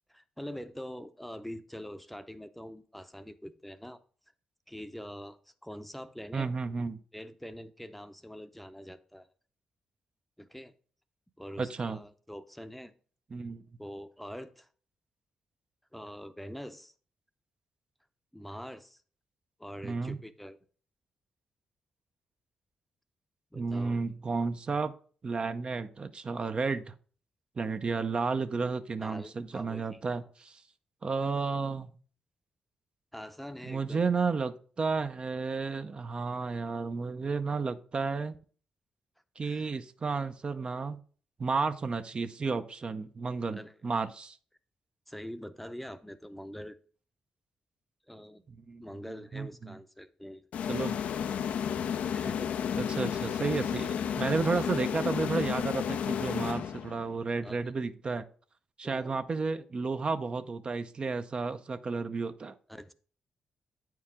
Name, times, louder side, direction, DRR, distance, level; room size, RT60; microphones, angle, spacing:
voice 1, 0.1-4.0 4.7-6.5 7.1-9.3 10.4-10.7 11.4-12.9 13.8-14.7 15.9-16.9 18.3-19.0 19.6-20.6 23.5-24.0 29.0-30.0 33.1-34.0 39.4-39.7 43.5-43.7 45.1-46.8 48.1-48.4 48.8-50.4 52.1-52.5 57.4-57.6 58.8-59.1 62.7-62.9, equal, 5° left, 11 dB, 0.6 m, -44 dB
voice 2, 6.3-7.0 11.6-12.0 13.3-13.6 19.8-20.2 23.5-24.9 25.2-26.9 27.6-30.6 31.0-31.9 33.6-38.4 39.4-41.0 41.4-44.4 48.5-48.8 49.3-49.8 50.7-51.0 52.8-58.2 58.8-62.6, right 4 dB, 45° right, 9 dB, 0.6 m, -32 dB
sound 1, 50.5-57.1, left 8 dB, 75° left, 0.4 m, -32 dB
8.5 x 4.7 x 3.6 m, 0.43 s
supercardioid pair, 50°, 2 cm